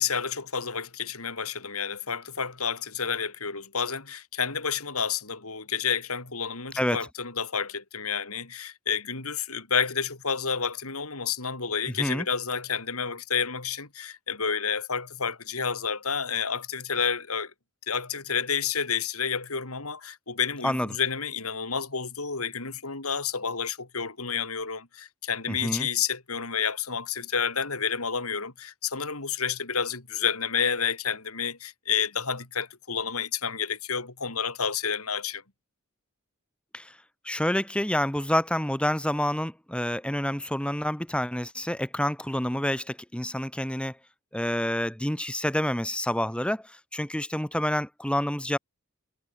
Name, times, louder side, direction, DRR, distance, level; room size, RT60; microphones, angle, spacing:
voice 1, 0.0-17.5 17.9-35.4, left 6 dB, 90° left, 4.7 m, -30 dB
voice 2, 25.5-25.9 36.7-36.9 37.2-43.9 44.3-46.6 46.9-48.6, left 1 dB, 5° left, 2.5 m, -28 dB
head